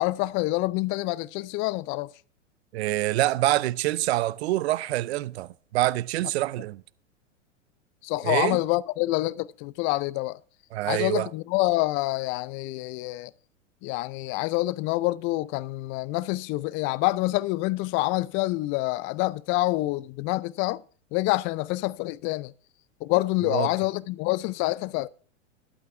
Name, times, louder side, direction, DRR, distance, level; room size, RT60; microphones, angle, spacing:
voice 1, 0.0-2.1 8.0-10.4 10.9-13.3 13.8-20.8 21.1-22.5 23.0-25.1, left 19 dB, 30° left, 0.5 m, -27 dB
voice 2, 2.7-6.8 8.2-8.6 10.7-11.3 23.5-23.7, right 16 dB, 55° right, 0.7 m, -26 dB
12.0 x 9.0 x 5.8 m
figure-of-eight pair, 95°, 38 cm